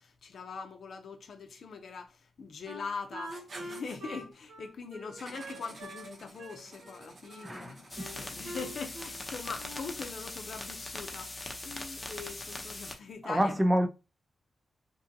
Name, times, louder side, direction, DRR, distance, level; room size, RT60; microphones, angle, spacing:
voice 1, 0.0-11.3 11.6-13.5, left 5 dB, 70° left, 0.6 m, -42 dB
Wind instrument woodwind instrument, 2.6-6.1 6.4-7.5 8.0-9.2 9.6-10.0, right 1 dB, 80° right, 1.2 m, -45 dB
Writing, 3.2-4.0 5.2-9.5, right 2 dB, 50° right, 0.7 m, -51 dB
voice 2, 7.4-8.1 13.2-13.9, equal, 15° right, 0.4 m, -28 dB
sound 1, 7.9-12.9, left 2 dB, 30° left, 0.7 m, -41 dB
2.6 x 2.5 x 2.6 m
cardioid pair, 65°, 0 cm